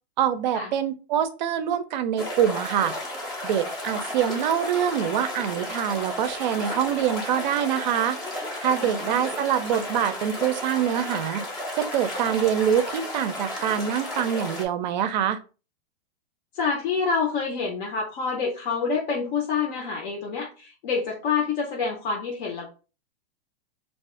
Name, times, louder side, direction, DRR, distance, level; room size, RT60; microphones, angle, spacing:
voice 1, 0.2-2.9 3.4-8.2 8.6-11.4 11.8-15.4, right 9 dB, 45° right, 10 dB, 0.4 m, -25 dB
sound 1, 2.2-14.7, left 1 dB, 15° left, 0.4 m, -33 dB
voice 2, 8.8-9.4 16.5-22.7, left 5 dB, 55° left, 0 dB, 0.7 m, -27 dB
2.4 x 2.3 x 3.6 m, 0.34 s
supercardioid pair, 165°, 32 cm